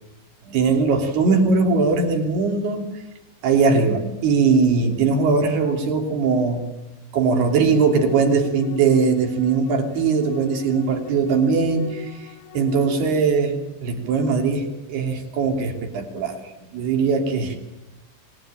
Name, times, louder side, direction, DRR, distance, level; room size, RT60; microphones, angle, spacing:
voice 1, 0.5-2.9 3.4-6.6 7.1-12.3 12.5-16.4 16.7-17.6, right 4 dB, 60° right, 3 dB, 4.9 m, -20 dB
sound 1, 7.4-13.2, left 9 dB, 80° left, 3.3 m, -39 dB
25.5 x 18.5 x 9.1 m, 1.0 s
omnidirectional pair, 5.5 m